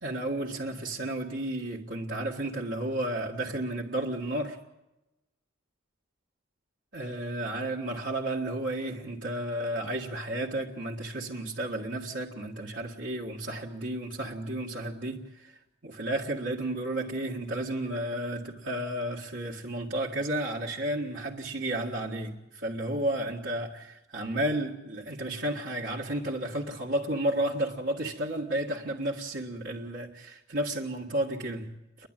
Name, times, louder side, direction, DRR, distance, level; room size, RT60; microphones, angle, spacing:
voice 1, 0.0-4.6 6.9-15.6 15.8-32.1, right 1 dB, 65° right, 1.8 m, -32 dB
29.0 x 11.5 x 9.0 m
head